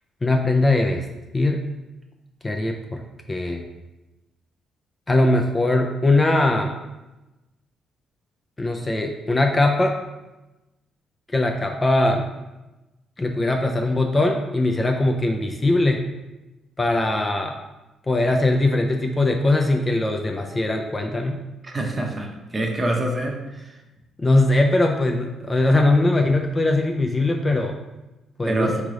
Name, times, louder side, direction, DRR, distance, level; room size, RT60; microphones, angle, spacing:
voice 1, 0.2-1.1 1.3-1.6 2.4-3.0 3.3-3.6 5.1-6.7 8.6-10.0 11.3-12.3 13.2-16.0 16.8-17.6 18.1-21.4 24.2-27.8 28.4-28.7, left 2 dB, 25° left, 3 dB, 0.4 m, -20 dB
voice 2, 21.6-23.4 28.4-28.7, right 1 dB, 25° right, 2 dB, 0.8 m, -25 dB
3.6 x 3.3 x 3.8 m, 1.1 s
cardioid pair, 90°, 0 cm